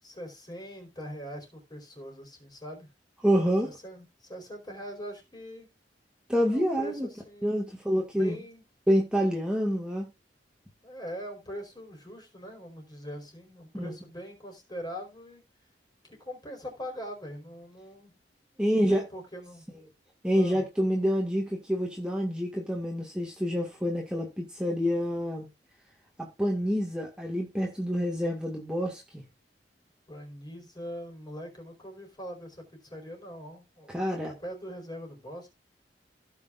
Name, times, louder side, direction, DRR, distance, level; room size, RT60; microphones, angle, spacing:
voice 1, 0.0-2.9 3.6-5.7 6.5-7.8 8.2-8.6 10.8-15.4 16.0-18.2 18.5-19.7 20.3-20.6 30.1-35.5, equal, 25° left, 4.6 m, -42 dB
voice 2, 3.2-3.7 6.3-7.1 7.4-8.4 8.9-10.0 13.8-13.9 18.6-19.0 20.2-25.5 26.2-29.2 33.9-34.3, equal, 5° right, 1.8 m, -27 dB
16.5 x 6.3 x 2.5 m
head